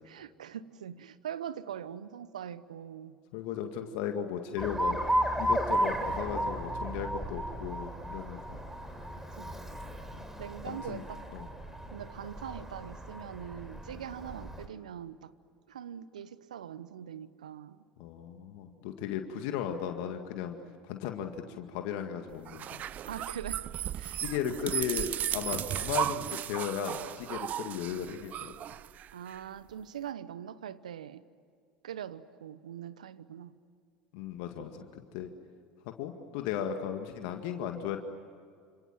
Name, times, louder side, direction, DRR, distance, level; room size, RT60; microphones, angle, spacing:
voice 1, 0.0-3.2 9.4-9.6 10.4-11.2 11.9-15.3 15.7-17.8 23.0-23.6 23.9-24.6 29.1-31.2 31.8-33.5, right 9 dB, 80° right, 1.0 m, -42 dB
voice 2, 3.3-5.0 5.4-8.6 10.1-10.3 10.7-11.0 11.3-11.5 18.0-20.6 20.8-22.8 24.2-28.7 34.1-35.3 35.9-38.0, left 9 dB, 65° left, 2.0 m, -36 dB
Alarm, 4.6-14.7, right 1 dB, 10° right, 3.9 m, -34 dB
sound 1, 22.5-29.4, right 11 dB, 45° right, 0.6 m, -35 dB
28.5 x 27.0 x 7.6 m
hypercardioid pair, 80°, 4 cm